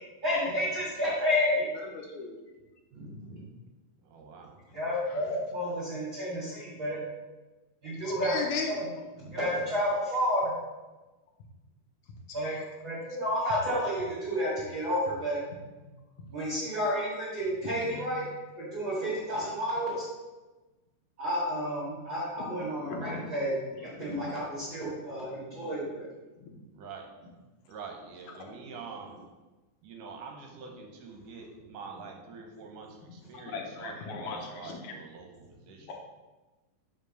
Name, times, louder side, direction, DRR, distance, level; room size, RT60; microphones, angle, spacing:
voice 1, 0.2-1.7 2.9-3.4 4.7-7.0 7.8-8.3 8.7-8.8 9.2-10.5 12.3-12.5 12.8-15.4 16.3-18.2 18.6-20.0 21.2-23.5 23.8-26.1, equal, 40° right, -9 dB, 2.4 m, -31 dB
voice 2, 4.1-4.5 26.8-27.0 27.7-29.2 29.8-33.9 34.2-35.3 35.7-35.8, right 5 dB, 70° right, 2 dB, 2.2 m, -45 dB
voice 3, 8.2-8.7 12.5-12.6 17.6-18.1 22.9-23.2 24.0-24.2 26.4-26.5 33.5-34.9, left 5 dB, 70° left, 1 dB, 2.0 m, -36 dB
5.3 x 5.2 x 6.4 m, 1.2 s
omnidirectional pair, 4.1 m